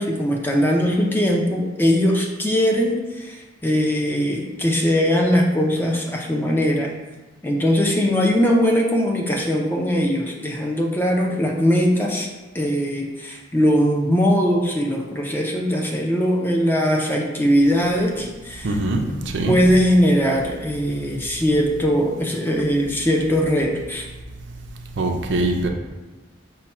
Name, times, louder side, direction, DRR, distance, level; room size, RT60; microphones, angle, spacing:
voice 1, 0.0-6.9 7.4-12.3 12.5-18.8 19.1-24.1, equal, 10° left, 0 dB, 0.4 m, -20 dB
voice 2, 18.6-19.6 25.0-25.7, right 2 dB, 60° right, 4 dB, 0.5 m, -22 dB
5.6 x 2.2 x 4.2 m, 1.2 s
head